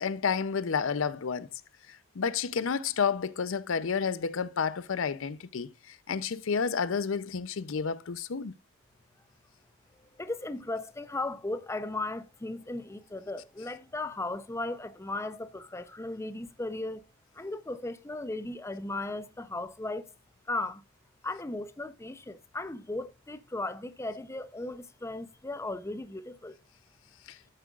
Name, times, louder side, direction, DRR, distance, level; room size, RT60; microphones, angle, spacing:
voice 1, 0.0-1.5 1.9-8.5 27.3-27.4, left 6 dB, 65° left, 0.5 m, -30 dB
voice 2, 10.1-17.0 17.3-20.1 20.5-20.8 21.2-26.6, left 2 dB, 15° left, 0.6 m, -36 dB
13.0 x 7.6 x 2.4 m
head